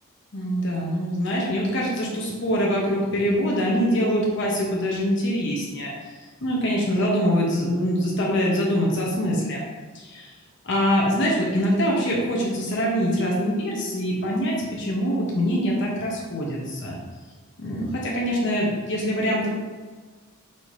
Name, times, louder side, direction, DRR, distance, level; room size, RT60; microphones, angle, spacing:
voice 1, 0.3-5.9 6.4-9.6 9.9-10.3 10.6-17.0 17.6-19.5, equal, 60° left, -3 dB, 0.9 m, -24 dB
5.5 x 2.9 x 3.2 m, 1.4 s
head